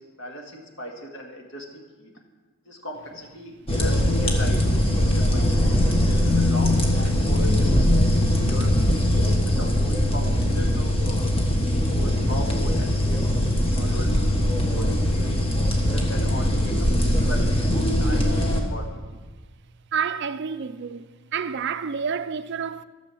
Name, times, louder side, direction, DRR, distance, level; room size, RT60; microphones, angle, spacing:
voice 1, 0.2-2.1 2.7-4.6 5.1-8.7 9.3-11.2 11.5-13.3 13.7-14.2 14.7-15.5 15.8-17.5 18.0-19.0, equal, 60° left, 2.0 m, -38 dB
sound 1, 3.7-18.6, left 1 dB, 25° left, 1.3 m, -21 dB
voice 2, 19.9-21.0 21.3-22.8, right 6 dB, 50° right, 0.4 m, -28 dB
13.0 x 6.9 x 7.1 m
head